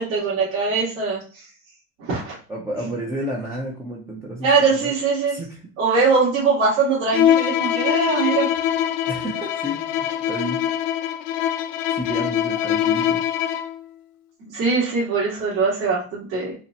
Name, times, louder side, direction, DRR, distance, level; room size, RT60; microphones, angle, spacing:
voice 1, 0.0-1.5 2.0-2.3 2.8-2.9 4.4-5.4 5.8-8.5 14.4-16.6, right 4 dB, 65° right, -8 dB, 1.9 m, -21 dB
voice 2, 2.5-4.5 4.8-4.9 5.3-5.6 9.1-10.6 11.9-13.2, equal, 5° right, -3 dB, 0.4 m, -31 dB
Bowed string instrument, 7.1-13.8, left 11 dB, 50° left, 0.5 m, -23 dB
4.1 x 2.1 x 4.0 m, 0.40 s
supercardioid pair, 140°, 42 cm